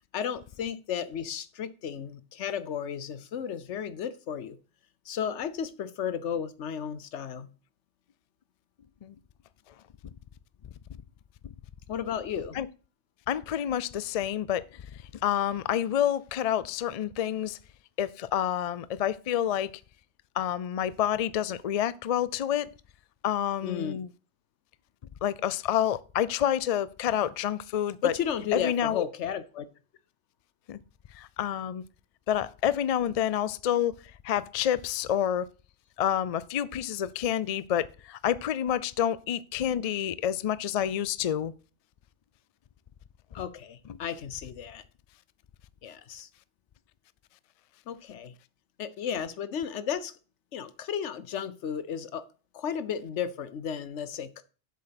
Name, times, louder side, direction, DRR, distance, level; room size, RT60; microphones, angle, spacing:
voice 1, 0.1-4.6 5.1-7.5 11.9-12.6 23.6-24.0 28.0-29.7 43.3-44.8 45.8-46.3 47.9-48.3 48.8-50.1 50.5-52.2 52.5-54.4, left 8 dB, 80° left, 1.1 m, -33 dB
voice 2, 13.3-14.6 15.2-17.6 18.0-19.7 20.4-22.7 23.2-24.1 25.2-28.1 28.5-29.1 30.7-30.8 31.2-31.8 32.3-33.9 34.2-35.5 36.0-41.5, left 10 dB, 55° left, 0.4 m, -28 dB
7.7 x 7.3 x 5.8 m
omnidirectional pair, 1.2 m